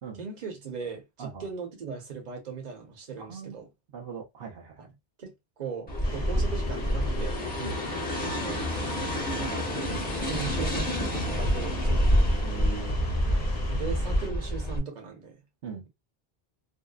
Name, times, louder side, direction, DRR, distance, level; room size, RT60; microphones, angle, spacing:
voice 1, 0.2-3.7 5.2-7.4 8.2-8.7 9.4-9.7 10.2-12.1 13.3-15.4, right 5 dB, 45° right, 0.9 m, -38 dB
voice 2, 3.2-3.6 3.9-4.8 7.6-7.8 12.4-13.0 15.6-15.8, right 6 dB, 70° right, 0.9 m, -40 dB
sound 1, 5.9-14.8, equal, 10° left, 0.7 m, -28 dB
sound 2, 6.0-14.3, left 3 dB, 60° left, 0.8 m, -39 dB
2.7 x 2.1 x 2.3 m
omnidirectional pair, 1.1 m